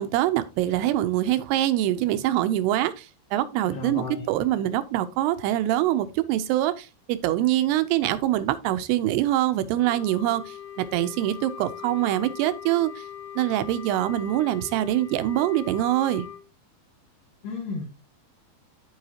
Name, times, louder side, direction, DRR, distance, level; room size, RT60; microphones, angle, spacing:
voice 1, 0.0-13.1 13.4-16.3, right 13 dB, 85° right, 2.7 m, -24 dB
voice 2, 3.7-4.3 17.4-17.9, left 4 dB, 70° left, 3.7 m, -33 dB
Wind instrument woodwind instrument, 9.8-16.4, left 9 dB, 90° left, 3.1 m, -41 dB
13.5 x 4.7 x 2.8 m
omnidirectional pair, 4.7 m